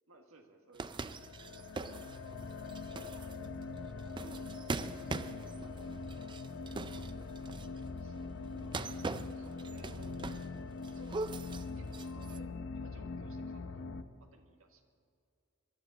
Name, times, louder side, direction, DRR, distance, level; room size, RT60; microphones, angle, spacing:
voice 1, 0.1-1.8 7.0-7.3 7.9-11.2 11.8-14.8, right 2 dB, 80° right, 4 dB, 1.7 m, -60 dB
sound 1, 0.7-7.8 8.6-10.6 10.8-12.4, right 3 dB, 25° right, 0.4 m, -42 dB
sound 2, 1.0-14.0, left 3 dB, 60° left, 0.7 m, -43 dB
22.5 x 12.5 x 4.1 m, 2.4 s
head